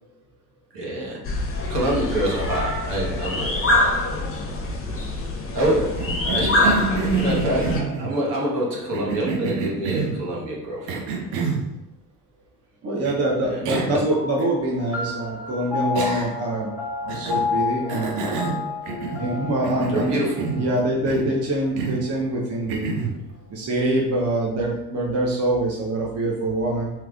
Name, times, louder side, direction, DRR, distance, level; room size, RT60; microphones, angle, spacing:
voice 1, 0.7-1.2 1.7-4.2 5.5-11.0 13.4-13.6 13.9-14.0 19.9-20.4, right 1 dB, 65° right, -4 dB, 1.4 m, -26 dB
sound 1, 1.2-7.8, left 2 dB, 30° left, 0.8 m, -25 dB
Cough, 6.0-8.2 8.9-10.2 10.9-11.7 13.0-13.2 13.6-14.0 14.4-14.5 15.9-16.5 17.1-17.5 17.9-19.3 19.6-20.7 21.1-21.4 21.8-22.1 22.7-23.2, right 4 dB, 80° right, 0.8 m, -27 dB
voice 2, 12.8-16.7 17.0-18.3 19.2-20.2 20.6-23.0 23.5-26.9, right 1 dB, 35° right, -3 dB, 0.8 m, -24 dB
sound 2, 14.1-22.9, left 5 dB, 5° right, 1.0 m, -32 dB
3.4 x 3.0 x 2.4 m, 0.91 s
hypercardioid pair, 65°, 46 cm